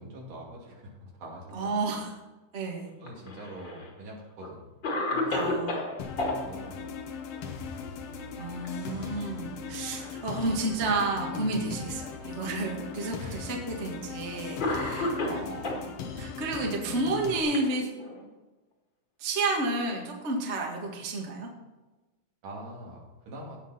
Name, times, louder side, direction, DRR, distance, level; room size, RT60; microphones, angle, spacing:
voice 1, 0.0-1.7 3.0-4.8 5.1-5.6 6.2-7.8 13.1-13.4 15.4-15.8 22.4-23.6, right 1 dB, 70° right, -3 dB, 4.1 m, -44 dB
voice 2, 1.5-2.1 2.5-2.9 5.3-5.7 8.4-17.9 19.2-21.5, right 2 dB, 30° right, 0 dB, 1.3 m, -31 dB
Cough, 3.0-3.9 4.4-4.5 4.8-6.4 8.2-8.7 9.0-9.1 9.9-10.6 11.4-11.5 12.6-12.7 13.8-14.0 14.6-15.9 16.8-18.3, left 2 dB, 40° left, 2.3 m, -32 dB
sound 1, 6.0-17.4, left 6 dB, 65° left, 1.7 m, -39 dB
17.0 x 5.9 x 4.3 m, 1.1 s
omnidirectional pair, 3.8 m